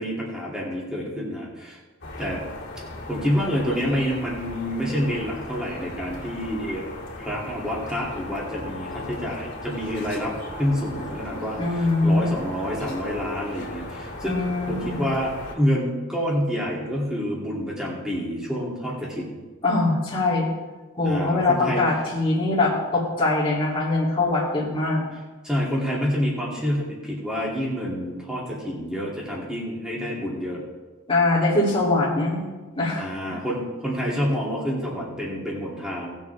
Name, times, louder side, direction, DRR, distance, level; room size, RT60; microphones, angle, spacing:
voice 1, 0.0-1.8 2.2-2.4 3.1-6.9 7.2-19.4 21.0-21.8 25.4-30.6 33.0-36.1, equal, 5° right, -5 dB, 2.7 m, -28 dB
sound 1, 2.0-15.6, left 1 dB, 50° left, 3.2 m, -37 dB
voice 2, 11.6-12.3 14.2-15.1 19.6-20.5 21.0-25.1 31.1-32.4 32.7-33.1, left 2 dB, 25° left, -6 dB, 2.8 m, -22 dB
19.0 x 7.3 x 3.4 m, 1.3 s
head